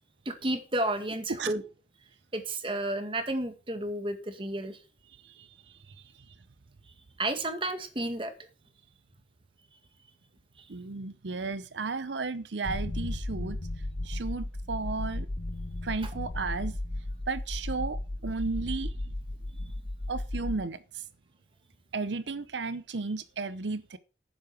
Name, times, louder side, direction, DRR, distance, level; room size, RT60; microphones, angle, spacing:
voice 1, 0.3-1.6 2.3-4.8 7.2-8.3 10.6-10.7, right 1 dB, 30° right, 2.0 m, -31 dB
voice 2, 5.1-6.3 10.7-13.6 14.0-15.3 15.8-16.8 17.3-19.1 19.6-19.7 20.1-21.1 21.9-24.0, right 4 dB, 90° right, 0.7 m, -34 dB
sound 1, 12.6-20.6, left 1 dB, 55° left, 0.9 m, -35 dB
11.5 x 9.7 x 4.9 m
head